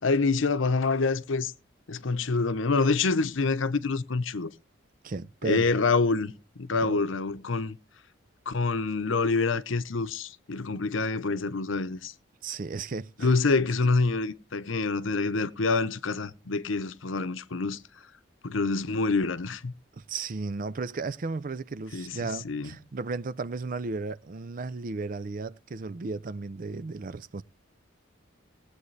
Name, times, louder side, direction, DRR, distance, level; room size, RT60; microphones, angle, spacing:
voice 1, 0.0-1.5 1.9-4.5 5.4-7.8 8.5-12.1 13.2-17.8 18.4-19.7 21.9-22.2 22.4-22.7, left 3 dB, 75° left, 0.8 m, -26 dB
voice 2, 5.0-5.7 6.8-7.1 12.4-13.3 20.0-27.4, right 4 dB, 45° right, 0.4 m, -34 dB
19.5 x 8.1 x 3.2 m
head